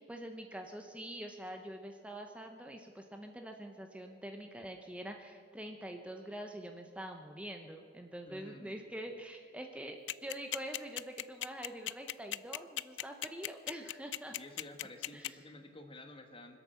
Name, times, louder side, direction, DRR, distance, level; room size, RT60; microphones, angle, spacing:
voice 1, 0.0-14.4 15.1-15.4, right 1 dB, 5° right, 4 dB, 0.8 m, -45 dB
voice 2, 8.3-8.7 14.3-16.6, left 1 dB, 30° left, 6 dB, 1.4 m, -51 dB
sound 1, 10.1-15.3, left 14 dB, 90° left, 0.4 m, -36 dB
25.0 x 8.4 x 6.9 m, 2.2 s
head